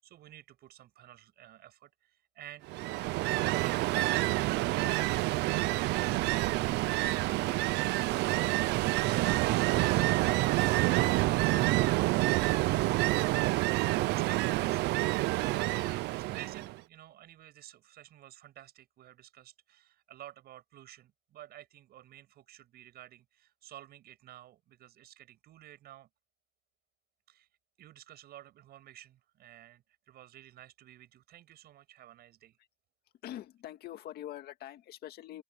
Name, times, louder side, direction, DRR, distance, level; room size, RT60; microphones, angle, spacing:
voice 1, 0.0-2.7 3.3-6.6 12.1-14.9 15.7-26.1 27.3-27.5 27.8-32.6, right 13 dB, 70° right, 7.2 m, -52 dB
Ocean, 2.7-16.8, right 19 dB, 85° right, 0.6 m, -28 dB
voice 2, 33.2-35.4, left 12 dB, 70° left, 2.0 m, -44 dB
open air
cardioid pair, 110°, 17 cm